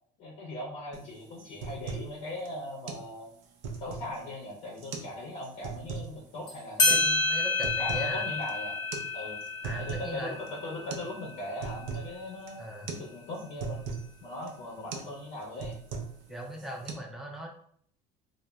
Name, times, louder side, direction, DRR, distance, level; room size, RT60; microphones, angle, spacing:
voice 1, 0.2-3.3 3.8-7.2 7.8-8.8 9.1-9.4 9.8-13.8 14.2-15.8, left 1 dB, 50° left, -3 dB, 0.6 m, -39 dB
sound 1, 0.9-1.1 1.4-2.1 2.4-2.5 2.9-3.1 3.4-4.2 4.8-5.1 5.4-6.1 6.9-7.1 7.4-8.1 8.4-8.5 8.9-9.1 9.4-10.1 10.5-10.6 10.9-11.1 11.4-12.1 12.5-12.6 12.9-13.1 13.3-14.1 14.5-14.6 14.9-15.1 15.4-16.2 16.5-16.9, right 5 dB, 75° right, 0.5 m, -38 dB
sound 2, 6.5-6.6 6.8-11.9, left 3 dB, 20° left, 0.8 m, -30 dB
voice 2, 6.8-8.3 9.6-10.3 12.6-12.9 16.3-17.5, right 1 dB, ahead, -1 dB, 0.3 m, -39 dB
2.8 x 2.0 x 2.2 m, 0.63 s
cardioid pair, 145°, 20 cm